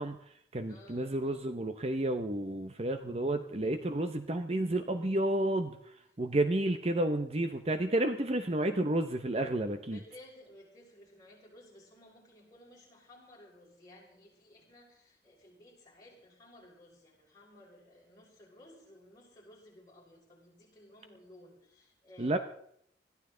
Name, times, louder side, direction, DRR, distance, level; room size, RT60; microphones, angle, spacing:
voice 1, 0.0-10.0 22.2-22.4, right 1 dB, 35° right, 8 dB, 0.8 m, -31 dB
voice 2, 0.7-1.1 9.9-22.4, left 1 dB, 20° left, -4 dB, 5.7 m, -56 dB
21.0 x 14.0 x 3.9 m, 0.69 s
head